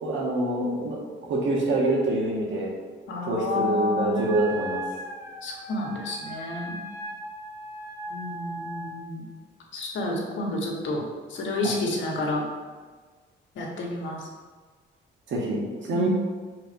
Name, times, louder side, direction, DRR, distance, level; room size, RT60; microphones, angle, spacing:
voice 1, 0.0-1.0 1.3-2.7 3.3-4.8 11.6-11.7 15.3-16.1, right 2 dB, 70° right, -4 dB, 1.8 m, -25 dB
voice 2, 3.1-4.2 5.4-6.8 8.1-9.3 9.7-12.4 13.5-14.3 15.9-16.1, left 2 dB, 70° left, -1 dB, 1.4 m, -30 dB
Wind instrument woodwind instrument, 4.1-9.0, right 1 dB, 15° right, 1.0 m, -37 dB
5.0 x 3.9 x 5.1 m, 1.4 s
cardioid pair, 90°, 20 cm